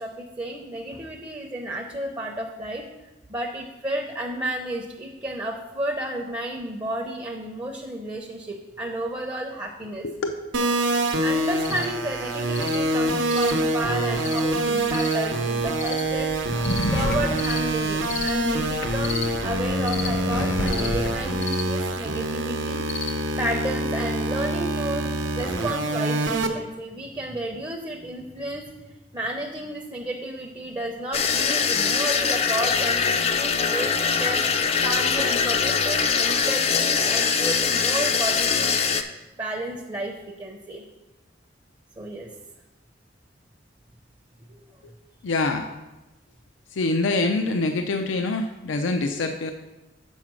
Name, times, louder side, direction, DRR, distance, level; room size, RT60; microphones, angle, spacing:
voice 1, 0.0-2.9 3.3-10.1 11.2-16.3 16.9-22.8 23.1-28.6 29.1-34.4 34.8-38.8 39.4-40.8 42.0-42.3, right 1 dB, 20° right, 2 dB, 0.6 m, -32 dB
sound 1, 10.5-26.5, right 1 dB, 80° right, 0.8 m, -25 dB
sound 2, 11.4-23.5, left 2 dB, 65° left, 0.8 m, -33 dB
sound 3, 31.1-39.0, left 6 dB, 30° left, 0.4 m, -22 dB
voice 2, 45.2-45.7 46.7-49.5, left 2 dB, 90° left, 5 dB, 0.5 m, -25 dB
7.2 x 4.9 x 6.1 m, 1.1 s
head